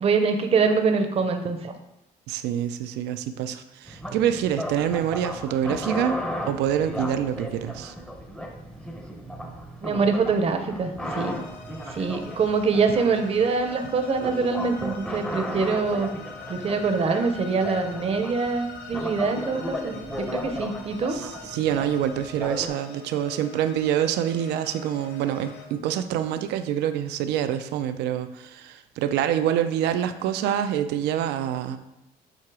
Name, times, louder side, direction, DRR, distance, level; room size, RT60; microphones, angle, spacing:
voice 1, 0.0-1.7 9.8-11.4 11.9-16.1 16.5-21.2, right 4 dB, 35° right, 6 dB, 0.7 m, -24 dB
voice 2, 2.3-7.9 21.1-31.8, right 10 dB, 85° right, 10 dB, 0.5 m, -26 dB
sound 1, 3.9-22.7, equal, 5° left, 0.7 m, -35 dB
sound 2, 11.1-25.7, left 4 dB, 85° left, 1.1 m, -44 dB
7.7 x 2.8 x 4.8 m, 0.91 s
cardioid pair, 110°, 17 cm